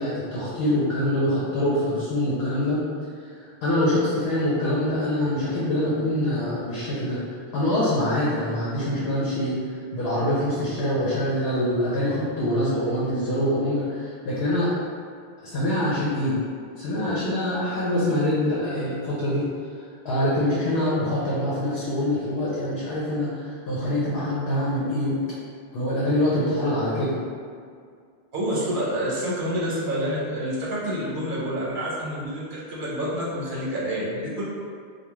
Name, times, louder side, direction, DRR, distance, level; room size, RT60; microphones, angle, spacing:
voice 1, 0.0-2.8 3.4-9.6 9.9-14.7 15.4-16.4 16.8-19.4 19.8-25.2 25.7-27.1, left 1 dB, 75° left, -8 dB, 0.8 m, -25 dB
voice 2, 28.3-34.4, equal, 60° right, -7 dB, 0.9 m, -28 dB
2.3 x 2.2 x 3.0 m, 2.2 s
omnidirectional pair, 1.0 m